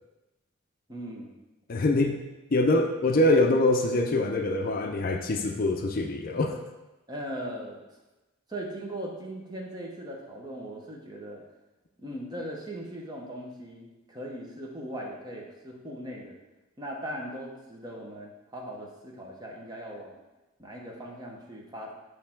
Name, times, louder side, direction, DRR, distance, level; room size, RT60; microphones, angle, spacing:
voice 1, 0.9-1.4 7.1-7.8 8.5-11.4 12.0-16.4 16.8-20.2 20.6-21.9, right 1 dB, 20° right, -1 dB, 0.9 m, -39 dB
voice 2, 1.7-2.2 2.5-6.6, left 2 dB, 45° left, 4 dB, 0.4 m, -24 dB
6.5 x 3.2 x 5.8 m, 1.1 s
head